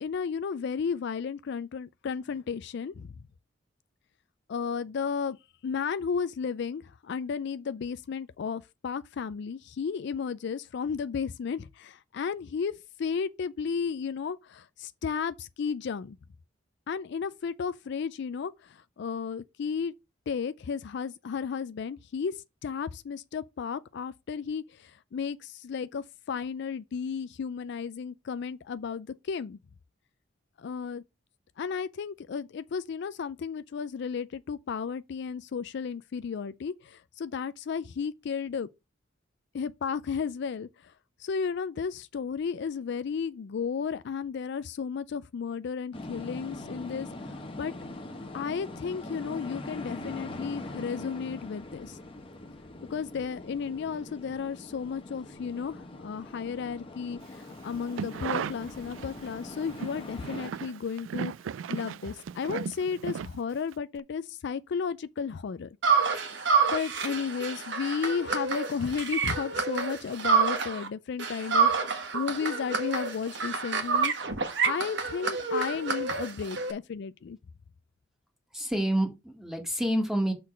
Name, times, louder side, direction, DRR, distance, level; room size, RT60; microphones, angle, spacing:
voice 1, 0.0-3.1 4.5-5.4 5.6-16.2 16.9-19.9 20.3-29.6 30.6-31.0 31.6-38.7 39.5-40.9 41.2-47.7 48.3-52.0 52.9-61.3 61.7-65.7 66.7-74.1 74.6-77.4, left 6 dB, 65° left, 0.4 m, -33 dB
sound 1, 45.9-60.5, left 2 dB, 30° left, 1.1 m, -42 dB
sound 2, 57.7-59.3 59.6-63.7 64.0-64.1, right 7 dB, 90° right, 0.3 m, -36 dB
sound 3, 65.8-70.9 71.2-76.7, right 5 dB, 65° right, 1.4 m, -28 dB
voice 2, 78.5-80.3, right 1 dB, 5° right, 1.7 m, -28 dB
6.5 x 3.9 x 6.0 m
head